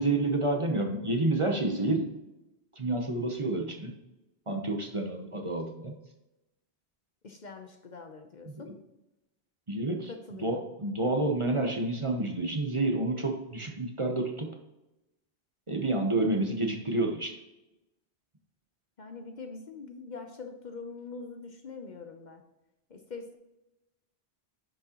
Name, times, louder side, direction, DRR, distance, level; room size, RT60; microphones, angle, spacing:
voice 1, 0.0-2.1 2.8-3.9 4.5-5.9 8.5-8.6 9.7-10.1 10.4-14.5 15.7-17.4, right 2 dB, 30° right, 2 dB, 0.9 m, -29 dB
voice 2, 7.2-8.7 10.1-10.7 19.0-22.4 22.9-23.4, left 4 dB, 50° left, 5 dB, 0.8 m, -43 dB
10.0 x 6.3 x 2.9 m, 0.98 s
omnidirectional pair, 1.1 m